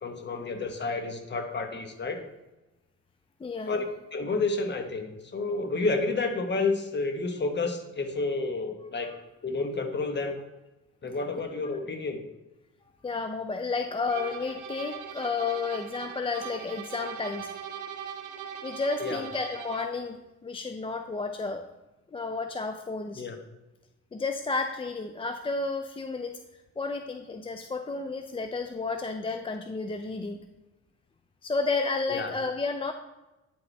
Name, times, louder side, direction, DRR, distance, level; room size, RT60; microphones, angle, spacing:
voice 1, 0.0-2.2 3.7-3.8 4.1-9.1 9.4-10.4 11.0-12.2 19.0-19.2 23.1-23.4 32.1-32.3, left 3 dB, 35° left, 5 dB, 1.1 m, -30 dB
voice 2, 3.4-3.7 13.0-17.5 18.6-21.6 22.1-23.2 24.1-26.4 26.8-30.4 31.4-32.9, left 4 dB, 20° left, 6 dB, 0.4 m, -32 dB
sound 1, 14.1-20.0, right 8 dB, 80° right, 0.8 m, -40 dB
9.2 x 5.0 x 3.2 m, 1.0 s
cardioid pair, 90°, 30 cm